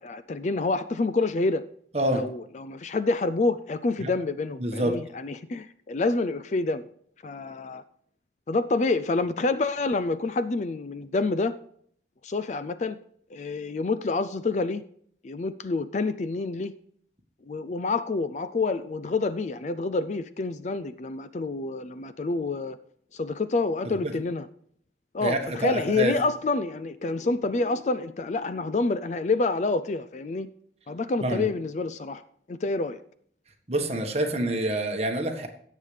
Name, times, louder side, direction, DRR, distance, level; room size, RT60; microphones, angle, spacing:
voice 1, 0.0-1.6 2.1-6.9 7.2-7.8 8.5-11.6 12.2-13.0 13.3-14.8 15.2-16.7 17.5-22.8 23.1-24.5 25.1-30.5 30.9-32.2 32.5-33.0, left 3 dB, 40° left, 14 dB, 0.4 m, -28 dB
voice 2, 4.6-5.0 23.8-24.1 25.2-26.1 31.2-31.4 33.7-35.5, right 1 dB, 35° right, 3 dB, 1.4 m, -27 dB
17.0 x 7.4 x 3.3 m, 0.63 s
head